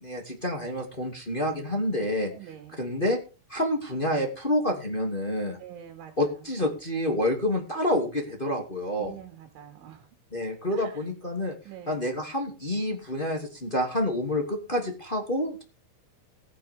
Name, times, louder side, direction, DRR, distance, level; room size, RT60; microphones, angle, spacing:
voice 1, 0.0-2.3 2.8-3.2 3.5-5.6 6.2-9.1 10.3-11.5 11.9-15.6, left 1 dB, 20° left, 2 dB, 1.5 m, -28 dB
voice 2, 2.3-2.8 5.6-6.5 9.0-10.1 10.7-11.1 11.7-12.0, right 10 dB, 85° right, 5 dB, 4.4 m, -45 dB
19.5 x 8.9 x 3.6 m, 0.33 s
omnidirectional pair, 5.4 m